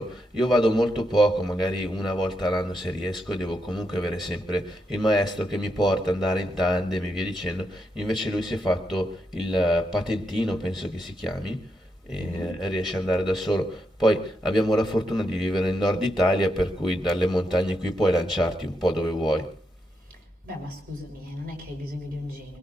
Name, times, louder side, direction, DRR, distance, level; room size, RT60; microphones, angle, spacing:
voice 1, 0.0-11.6 12.1-19.5, equal, ahead, 1.1 m, -25 dB
voice 2, 12.2-12.6 20.4-22.6, left 1 dB, 50° right, 5.4 m, -36 dB
24.5 x 22.0 x 2.7 m
head